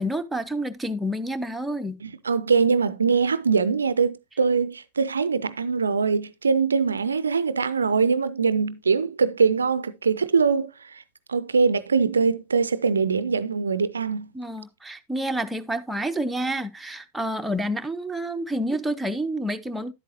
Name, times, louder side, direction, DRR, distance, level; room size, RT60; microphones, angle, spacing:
voice 1, 0.0-2.0 14.3-19.9, right 1 dB, 5° right, 0.7 m, -29 dB
voice 2, 2.0-11.0 11.3-14.3, right 5 dB, 75° right, 0.4 m, -23 dB
10.5 x 8.2 x 2.8 m
figure-of-eight pair, 90°, 0 cm